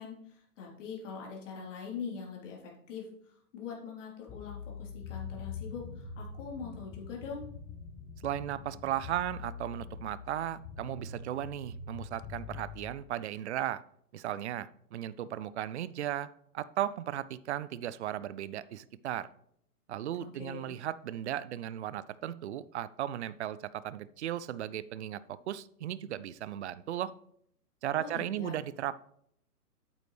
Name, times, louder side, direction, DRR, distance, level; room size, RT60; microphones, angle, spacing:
voice 1, 0.0-7.5 20.3-20.8 28.0-28.6, left 6 dB, 50° left, -3 dB, 3.7 m, -43 dB
sound 1, 4.3-12.9, left 5 dB, 10° left, 0.6 m, -44 dB
voice 2, 8.2-13.8 14.1-16.3 16.5-19.3 19.9-27.1 27.8-28.9, right 11 dB, 50° right, 17 dB, 0.5 m, -36 dB
8.9 x 8.2 x 3.3 m, 0.70 s
hypercardioid pair, 135°, 46 cm